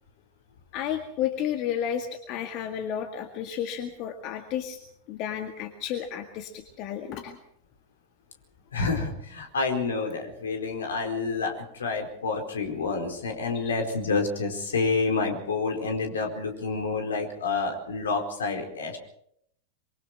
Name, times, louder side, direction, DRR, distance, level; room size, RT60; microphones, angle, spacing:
voice 1, 0.7-4.8 5.1-7.4 13.5-13.6, left 9 dB, 40° left, 6 dB, 2.0 m, -32 dB
voice 2, 8.7-19.0, left 4 dB, 65° left, 3 dB, 4.5 m, -28 dB
25.5 x 24.0 x 4.6 m, 0.69 s
figure-of-eight pair, 90°, 0 cm